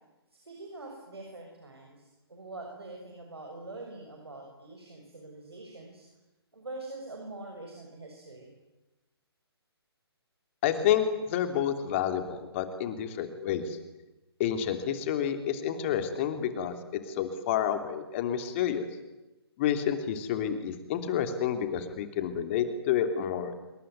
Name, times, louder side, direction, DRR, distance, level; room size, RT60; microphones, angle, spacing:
voice 1, 0.4-6.0 6.5-8.5, right 2 dB, 70° right, 1 dB, 6.9 m, -44 dB
voice 2, 10.6-13.8 14.4-16.7 17.2-18.9 19.6-23.5, left 9 dB, 30° left, 8 dB, 3.2 m, -29 dB
27.0 x 22.5 x 9.5 m, 1.0 s
figure-of-eight pair, 135°, 14 cm